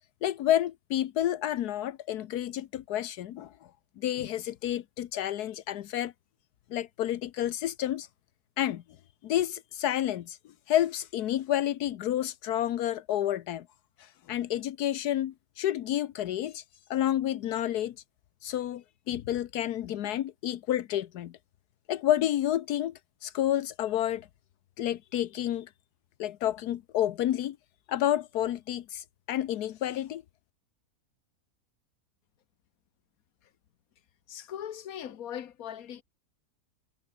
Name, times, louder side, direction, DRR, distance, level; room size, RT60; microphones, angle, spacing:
voice 1, 0.2-3.5 4.0-6.1 6.7-8.1 8.6-8.8 9.2-10.4 10.7-13.7 14.0-16.6 16.9-17.9 18.4-21.3 21.9-22.9 23.2-24.3 24.8-25.7 26.2-27.6 27.9-30.2, left 12 dB, 85° left, 1.3 m, -30 dB
voice 2, 34.3-36.0, left 10 dB, 70° left, 1.5 m, -39 dB
omnidirectional pair, 1.6 m